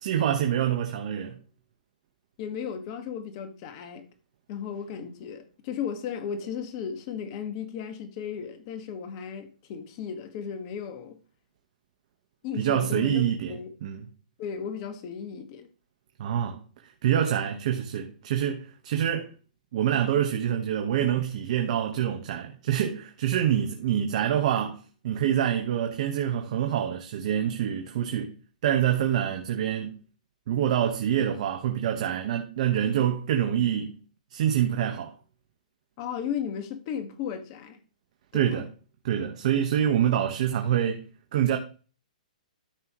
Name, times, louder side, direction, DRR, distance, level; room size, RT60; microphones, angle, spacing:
voice 1, 0.0-1.3 12.6-14.1 16.2-16.6 17.0-19.3 19.7-28.4 28.6-30.0 30.5-34.0 34.3-35.1 38.3-38.7 39.0-41.0 41.3-41.6, right 10 dB, 55° right, 1.3 m, -26 dB
voice 2, 2.4-4.1 4.5-11.2 12.4-13.2 13.5-13.7 14.4-15.7 36.0-37.8 38.3-38.7, left 7 dB, 40° left, 1.7 m, -35 dB
13.5 x 5.6 x 3.1 m
hypercardioid pair, 135°, 4 cm